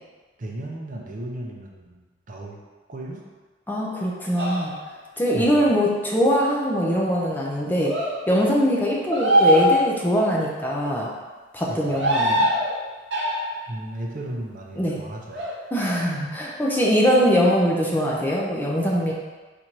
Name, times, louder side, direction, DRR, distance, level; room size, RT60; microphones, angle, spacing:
voice 1, 0.4-2.6 2.9-3.2 5.3-5.7 11.7-12.0 13.7-15.4, right 1 dB, 45° right, -1 dB, 0.6 m, -35 dB
voice 2, 3.7-4.8 5.2-7.9 8.3-11.1 11.5-12.5 14.8-15.0 15.7-19.1, equal, 10° left, -4 dB, 0.5 m, -22 dB
sound 1, 4.4-4.9 7.8-8.2 9.1-10.2 11.8-12.7 13.1-13.6 15.3-15.5, equal, 70° right, 0.8 m, -22 dB
4.2 x 2.6 x 4.5 m, 1.3 s
head